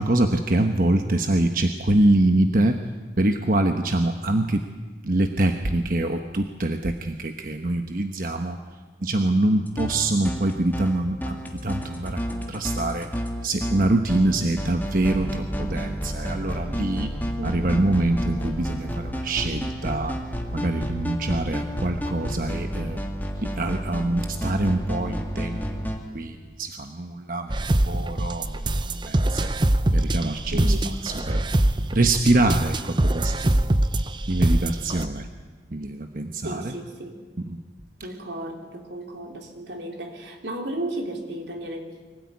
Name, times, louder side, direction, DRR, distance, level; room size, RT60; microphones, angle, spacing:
voice 1, 0.0-2.8 3.2-4.7 5.0-8.6 9.0-13.1 13.4-17.1 17.4-20.2 20.5-23.1 23.4-25.8 26.1-27.5 27.9-28.6 28.9-29.5 29.9-30.7 31.0-31.4 31.9-33.6 34.3-35.3 35.7-36.7, right 2 dB, 50° right, 6 dB, 1.1 m, -24 dB
sound 1, 9.7-26.0, equal, 10° left, 2.1 m, -30 dB
voice 2, 17.4-17.7 30.5-30.9 36.4-37.1 38.0-42.0, right 1 dB, 80° right, 3 dB, 3.5 m, -34 dB
sound 2, 27.5-35.1, right 1 dB, 25° right, 0.7 m, -23 dB
24.0 x 17.0 x 9.6 m, 1.4 s
head